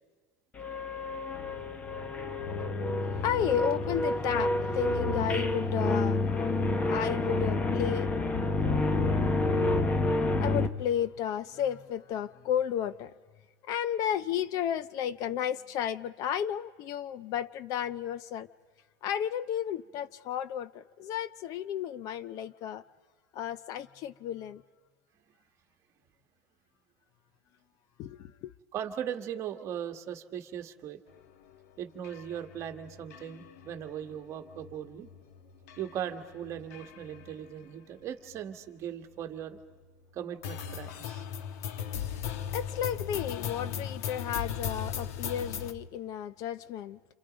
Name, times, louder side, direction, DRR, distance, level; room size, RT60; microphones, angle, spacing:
sound 1, 0.6-10.7, left 2 dB, 15° left, 1.0 m, -28 dB
voice 1, 3.0-8.1 8.5-13.1 13.6-18.5 19.0-22.8 23.3-24.6 28.0-28.5 42.1-47.0, left 9 dB, 45° left, 0.6 m, -33 dB
voice 2, 28.7-31.0 31.8-35.1 35.8-39.6 40.1-41.2, right 9 dB, 35° right, 1.5 m, -39 dB
sound 2, 31.5-31.6 32.0-37.3 38.4-38.5 39.6-39.7 40.4-45.7, left 8 dB, 80° left, 1.2 m, -38 dB
28.5 x 26.5 x 5.2 m
supercardioid pair, 155°, 8 cm